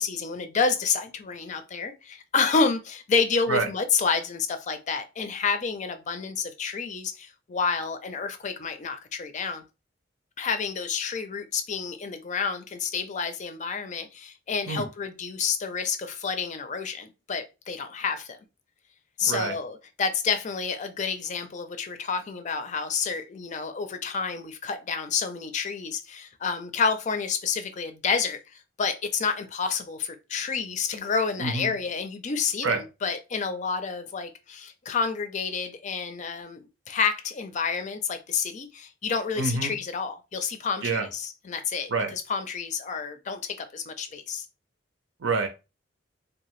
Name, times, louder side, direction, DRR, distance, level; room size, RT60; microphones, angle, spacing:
voice 1, 0.0-9.6 10.4-18.4 19.2-28.4 28.8-44.5, left 5 dB, 40° left, 0.4 m, -29 dB
voice 2, 19.2-19.5 31.4-31.7 32.6-32.8 39.4-39.7 40.8-41.1 41.9-42.1 45.2-45.5, right 4 dB, 85° right, 0.7 m, -26 dB
2.7 x 2.3 x 3.0 m
head